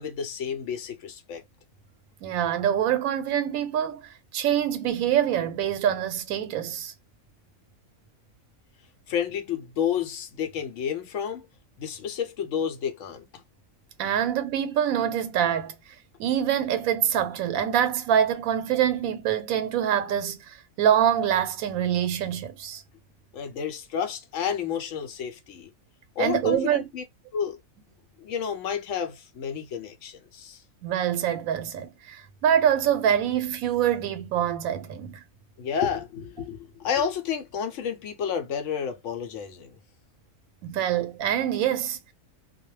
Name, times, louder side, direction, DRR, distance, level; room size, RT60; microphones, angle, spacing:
voice 1, 0.0-1.4 9.1-11.5 11.8-13.4 23.3-25.7 26.2-27.0 27.3-27.6 28.2-30.6 35.6-39.8, left 8 dB, 70° left, 0.9 m, -30 dB
voice 2, 2.2-6.9 14.0-15.7 16.2-22.8 26.2-26.9 30.8-35.2 40.6-42.1, right 9 dB, 85° right, 1.0 m, -25 dB
2.3 x 2.1 x 3.1 m
omnidirectional pair, 1.4 m